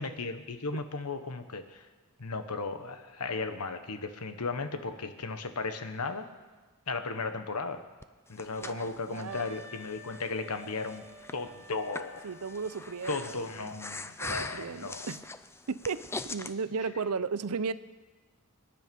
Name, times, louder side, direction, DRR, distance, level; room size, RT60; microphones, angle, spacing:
voice 1, 0.0-1.8 2.2-6.3 6.9-7.8 8.3-11.0 11.3-12.2 13.1-15.1, left 3 dB, 85° left, 8 dB, 1.3 m, -35 dB
Breathing, 8.0-16.5, left 3 dB, 10° left, 0.5 m, -42 dB
voice 2, 8.6-9.5 12.2-13.7 14.2-15.2 15.7-17.7, right 5 dB, 80° right, 15 dB, 0.6 m, -35 dB
Wind instrument woodwind instrument, 9.2-13.1, left 2 dB, 10° right, 4.8 m, -51 dB
24.5 x 10.5 x 5.4 m, 1.3 s
head